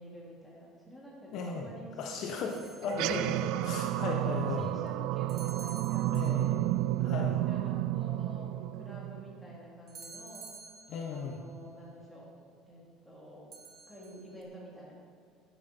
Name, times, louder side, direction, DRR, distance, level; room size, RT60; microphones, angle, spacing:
voice 1, 0.0-2.2 2.6-2.7 3.4-6.6 7.0-10.5 11.1-12.3 12.7-13.5 13.9-14.9, equal, ahead, -5 dB, 3.5 m, -49 dB
voice 2, 1.3-1.7 2.0-4.7 6.1-6.6 7.0-7.3 10.9-11.4, left 4 dB, 50° left, 2 dB, 1.3 m, -36 dB
sound 1, 2.5-3.2 5.3-6.8 9.9-11.4 13.5-14.4, right 4 dB, 35° right, 1.9 m, -50 dB
sound 2, 2.8-9.6, right 15 dB, 65° right, 0.4 m, -31 dB
12.5 x 11.0 x 5.6 m, 2.4 s
cardioid pair, 155°, 0 cm